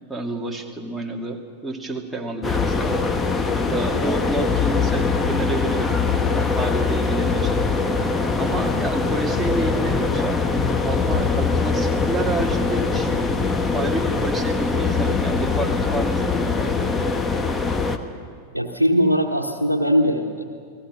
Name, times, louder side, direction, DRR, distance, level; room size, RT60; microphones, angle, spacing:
voice 1, 0.1-3.0 3.7-5.9 6.3-7.6 8.3-10.5 10.8-13.1 13.7-16.9, right 2 dB, 5° right, 1 dB, 2.5 m, -29 dB
sound 1, 2.4-18.0, left 4 dB, 15° left, 1.4 m, -22 dB
voice 2, 18.5-20.4, equal, 85° right, 0 dB, 1.2 m, -20 dB
29.0 x 19.5 x 6.3 m, 2.3 s
figure-of-eight pair, 90°, 0 cm